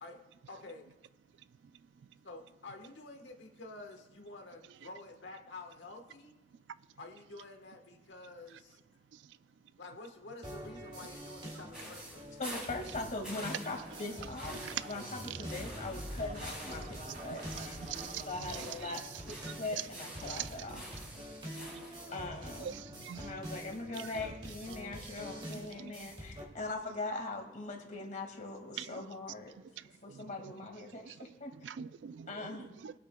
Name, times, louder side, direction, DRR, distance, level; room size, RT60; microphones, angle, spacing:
voice 1, 0.5-0.9 2.2-6.3 7.0-8.8 9.8-12.4 21.9-22.2 32.3-32.5, left 2 dB, 90° left, 1.3 m, -49 dB
sound 1, 10.4-26.4, equal, 30° right, 2.4 m, -46 dB
sound 2, 11.7-22.1, equal, 5° right, 3.4 m, -49 dB
voice 2, 12.4-17.8 18.3-20.9 22.1-22.8 23.2-29.6 30.0-31.7 32.3-32.7, left 2 dB, 45° left, 1.9 m, -41 dB
Scratching (performance technique), 13.5-18.4, equal, 55° right, 4.3 m, -46 dB
voice 3, 17.6-18.2 19.7-19.8 20.3-20.4 22.6-23.3 25.8-25.9 28.8-28.9 30.1-30.2 31.6-32.3 32.6-32.9, right 10 dB, 80° right, 0.3 m, -42 dB
23.0 x 8.3 x 2.2 m
head